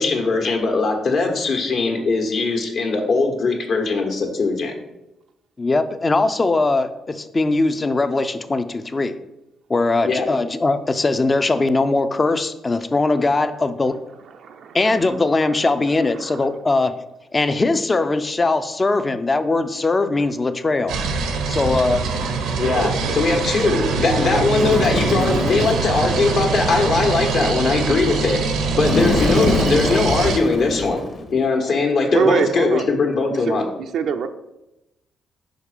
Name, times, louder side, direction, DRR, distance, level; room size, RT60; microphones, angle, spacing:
voice 1, 0.0-4.7 10.0-10.3 22.6-33.7, left 3 dB, 60° left, 2 dB, 1.3 m, -20 dB
voice 2, 5.6-9.2 9.7-14.0 14.7-17.0 17.3-21.0 21.5-22.0, left 3 dB, 25° left, 11 dB, 0.5 m, -20 dB
voice 3, 14.4-15.0 16.2-16.5 32.1-32.8 33.5-33.6 33.9-34.3, right 6 dB, 70° right, 6 dB, 0.4 m, -23 dB
sound 1, 20.9-30.4, right 4 dB, 85° right, 0.8 m, -23 dB
Bird, 24.6-26.0 28.8-31.3, left 2 dB, 40° left, 1.1 m, -24 dB
5.1 x 5.0 x 4.9 m, 0.92 s
cardioid pair, 90°, 0 cm